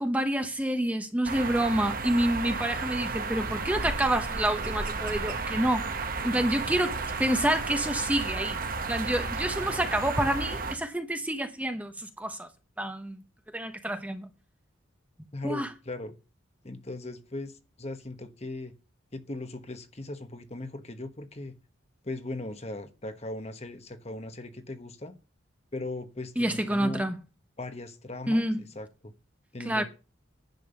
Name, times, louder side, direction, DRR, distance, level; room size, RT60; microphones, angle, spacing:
voice 1, 0.0-5.8 6.2-6.9 7.2-8.6 8.9-12.5 12.8-13.2 13.5-14.3 15.4-15.7 26.4-27.2 28.3-28.6 29.6-29.8, right 1 dB, 10° right, 1.0 m, -28 dB
sound 1, 1.2-10.8, right 4 dB, 45° right, 1.3 m, -33 dB
voice 2, 6.3-6.7 15.3-16.2 16.6-18.7 19.1-21.6 22.0-25.1 25.7-27.1 27.6-29.1 29.5-29.8, left 2 dB, 30° left, 1.2 m, -38 dB
10.5 x 7.2 x 7.0 m
head